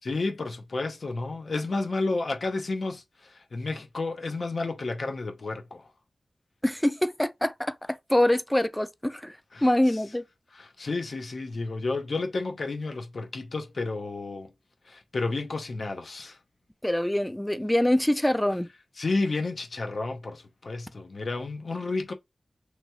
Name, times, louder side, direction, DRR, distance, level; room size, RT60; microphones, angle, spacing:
voice 1, 0.0-5.9 9.5-10.0 10.5-14.5 14.9-16.4 19.0-22.1, left 3 dB, 75° left, 0.6 m, -31 dB
voice 2, 6.6-7.7 8.1-10.2 16.8-18.7, left 1 dB, 10° left, 0.3 m, -24 dB
2.9 x 2.3 x 2.8 m
wide cardioid pair, 80°, 0 cm